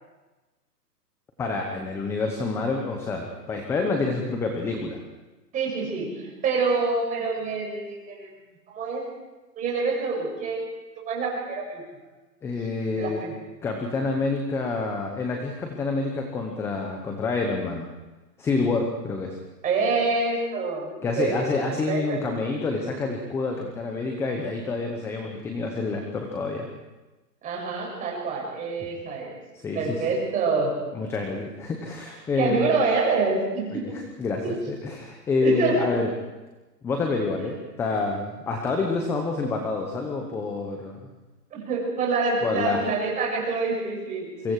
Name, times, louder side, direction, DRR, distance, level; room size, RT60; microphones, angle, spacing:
voice 1, 1.4-5.0 12.4-13.2 13.6-17.9 18.4-19.4 21.0-26.7 29.5-30.1 30.9-32.7 33.7-36.1 36.8-41.1 42.4-42.8 44.4-44.5, left 3 dB, 5° left, 3 dB, 0.9 m, -28 dB
voice 2, 5.5-8.3 8.7-9.0 9.6-10.6 11.0-11.8 13.0-13.4 19.6-22.2 27.4-29.3 29.7-30.8 32.4-33.8 34.4-34.6 35.4-35.9 41.5-44.3, right 4 dB, 15° right, -2 dB, 7.1 m, -26 dB
28.0 x 24.5 x 4.8 m, 1.1 s
hypercardioid pair, 150°, 49 cm